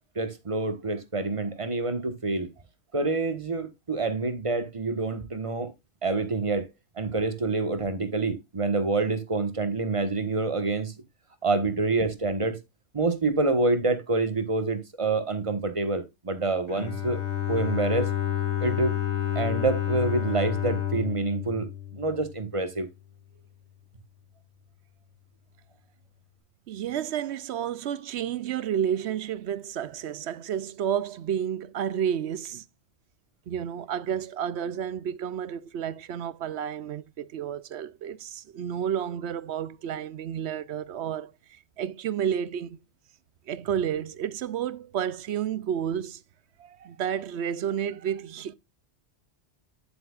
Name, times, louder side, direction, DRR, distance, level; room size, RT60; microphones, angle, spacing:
voice 1, 0.1-2.5 2.9-5.7 6.0-6.7 7.0-10.9 11.4-12.6 12.9-17.2 17.5-18.1 18.6-19.0 19.3-22.9, right 3 dB, 30° right, 1.4 m, -27 dB
Bowed string instrument, 16.7-22.6, left 10 dB, 85° left, 2.1 m, -29 dB
voice 2, 26.7-32.6 33.5-41.3 41.8-42.8 43.5-46.2 46.6-48.5, right 9 dB, 75° right, 0.9 m, -31 dB
9.4 x 7.7 x 2.4 m
omnidirectional pair, 1.1 m